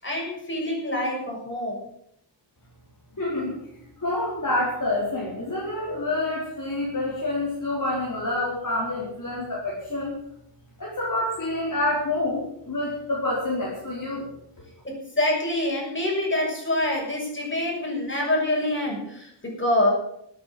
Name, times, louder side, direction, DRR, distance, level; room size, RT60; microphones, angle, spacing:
voice 1, 0.0-1.8 14.8-19.9, left 1 dB, 25° left, -2 dB, 6.7 m, -26 dB
voice 2, 3.1-10.2 10.8-14.3, left 2 dB, 45° left, -6 dB, 4.5 m, -28 dB
13.5 x 9.3 x 7.9 m, 0.74 s
wide cardioid pair, 115°, 42 cm